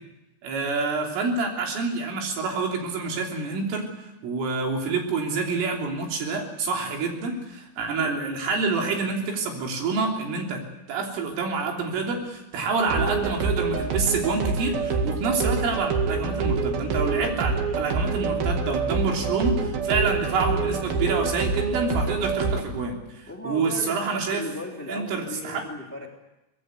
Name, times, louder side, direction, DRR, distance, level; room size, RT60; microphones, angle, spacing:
voice 1, 0.4-3.9 4.2-10.6 10.9-24.4 24.9-25.7, right 4 dB, 85° right, 1 dB, 5.8 m, -27 dB
sound 1, 12.9-22.6, right 4 dB, 55° right, 3.4 m, -26 dB
voice 2, 23.3-26.1, left 1 dB, 5° left, 1 dB, 1.6 m, -37 dB
23.5 x 20.0 x 8.2 m, 0.97 s
omnidirectional pair, 5.6 m